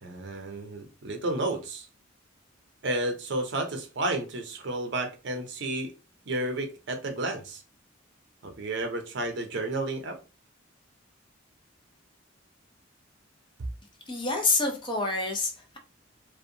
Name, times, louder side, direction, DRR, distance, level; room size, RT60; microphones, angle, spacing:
voice 1, 0.0-1.9 2.8-5.9 6.3-7.6 8.4-10.2 13.6-13.7, right 2 dB, 60° right, 0.6 m, -31 dB
voice 2, 14.1-15.8, left 3 dB, 25° left, 0.5 m, -27 dB
2.6 x 2.2 x 2.7 m
head